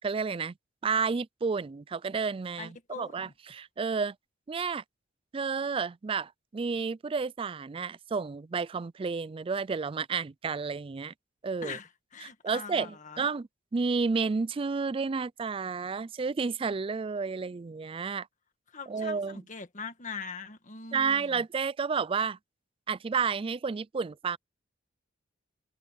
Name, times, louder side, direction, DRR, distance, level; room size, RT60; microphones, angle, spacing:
voice 1, 0.0-0.5 0.8-4.1 4.5-4.8 5.3-11.1 11.4-11.8 12.2-18.3 18.9-19.4 20.9-22.4 22.9-24.4, right 5 dB, 30° right, 0.3 m, -31 dB
voice 2, 2.6-3.3 11.6-13.3 18.7-21.4, left 5 dB, 40° left, 1.8 m, -42 dB
head